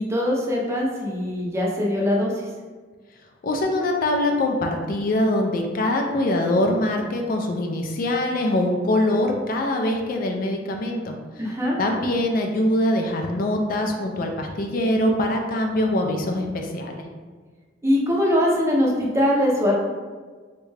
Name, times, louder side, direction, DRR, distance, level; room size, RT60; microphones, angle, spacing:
voice 1, 0.0-2.3 11.4-11.8 17.8-19.7, left 1 dB, 15° right, -3 dB, 0.5 m, -22 dB
voice 2, 3.4-11.2 11.8-17.1, left 1 dB, 45° left, 2 dB, 0.3 m, -23 dB
3.6 x 2.2 x 3.1 m, 1.5 s
head